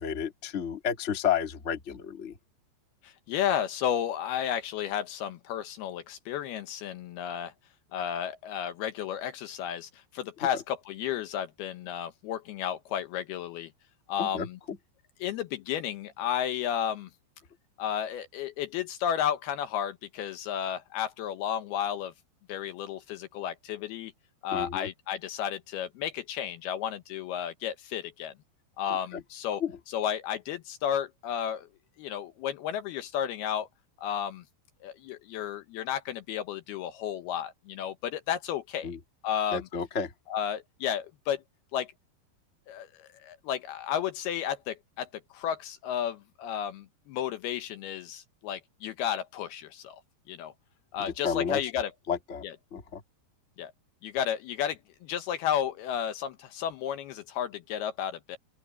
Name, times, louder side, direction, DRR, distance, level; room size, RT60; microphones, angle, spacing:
voice 1, 0.0-2.4 10.5-10.6 14.2-14.8 24.5-24.9 28.9-29.2 29.6-29.8 38.8-39.0 39.5-40.1 51.0-51.7 52.1-52.4 52.7-53.0, left 7 dB, 30° left, 1.3 m, -32 dB
voice 2, 3.0-7.5 7.9-13.7 14.1-14.5 15.2-17.1 17.8-22.1 22.5-24.1 24.4-28.3 28.8-29.6 29.9-31.7 32.0-33.7 34.0-34.4 34.8-38.9 39.2-39.6 40.3-41.4 41.7-41.9 42.7-45.1 45.3-50.0 50.3-50.5 50.9-51.9 53.6-53.7 54.0-58.4, left 9 dB, 75° left, 2.7 m, -32 dB
open air
omnidirectional pair, 5.1 m